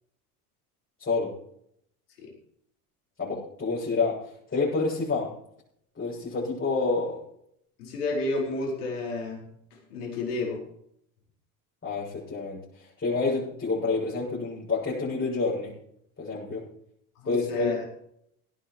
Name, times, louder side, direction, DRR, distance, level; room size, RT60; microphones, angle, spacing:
voice 1, 1.0-1.3 3.2-5.4 6.0-7.2 7.9-8.0 11.8-15.7 16.2-16.7 17.2-17.9, left 3 dB, 30° left, -7 dB, 7.5 m, -28 dB
voice 2, 7.8-9.5 9.9-10.6 17.2-17.8, left 2 dB, 85° left, -1 dB, 5.0 m, -31 dB
17.5 x 11.5 x 4.8 m, 0.71 s
hypercardioid pair, 75°, 44 cm